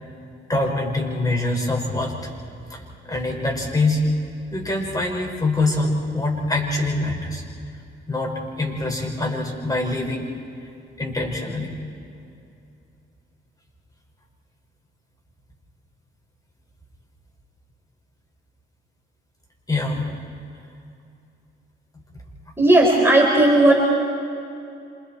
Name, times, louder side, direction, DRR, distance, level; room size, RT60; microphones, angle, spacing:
voice 1, 0.5-2.3 2.7-4.0 4.5-7.4 7.7-7.8 8.1-10.2 11.0-11.7 19.7-20.1 23.0-23.1, left 2 dB, 20° left, -1 dB, 6.5 m, -24 dB
voice 2, 22.6-23.7, right 1 dB, 10° right, -3 dB, 5.0 m, -15 dB
28.5 x 27.5 x 4.8 m, 2.6 s
cardioid pair, 90°, 20 cm